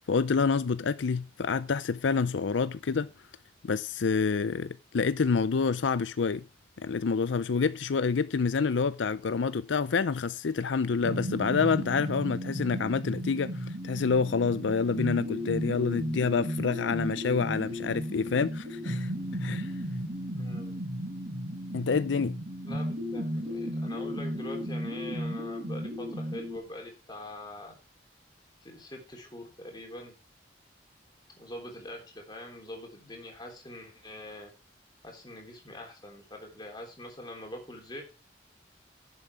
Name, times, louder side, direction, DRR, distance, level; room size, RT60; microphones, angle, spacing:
voice 1, 0.0-3.1 3.6-6.4 6.8-19.1 19.4-19.7 21.7-22.3, left 5 dB, 85° left, 0.5 m, -28 dB
sound 1, 11.0-26.6, equal, 50° right, 5.9 m, -34 dB
voice 2, 20.3-20.8 22.6-27.8 28.6-30.1 31.4-34.5 35.0-38.0, left 1 dB, 25° left, 3.4 m, -44 dB
11.0 x 7.2 x 4.7 m
head